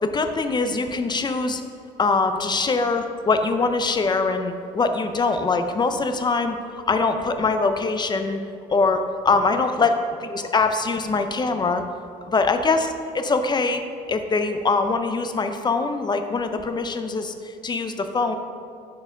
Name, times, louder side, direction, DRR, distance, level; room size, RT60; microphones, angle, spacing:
voice 1, 0.0-1.6 2.0-8.4 8.7-11.8 12.3-13.8 14.1-18.3, left 3 dB, 25° left, 7 dB, 0.5 m, -23 dB
6.5 x 4.7 x 5.8 m, 2.4 s
cardioid pair, 110°, 17 cm